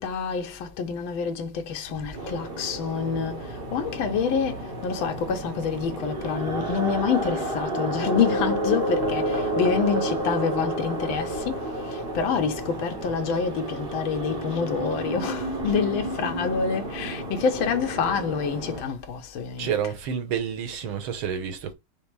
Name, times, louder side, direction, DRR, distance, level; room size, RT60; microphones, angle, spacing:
voice 1, 0.0-3.4 3.7-19.9, left 6 dB, 75° left, 1.6 m, -27 dB
sound 1, 2.2-18.8, right 1 dB, 45° right, 0.7 m, -30 dB
voice 2, 19.6-21.7, right 8 dB, 75° right, 1.7 m, -29 dB
5.3 x 2.0 x 4.6 m
omnidirectional pair, 2.3 m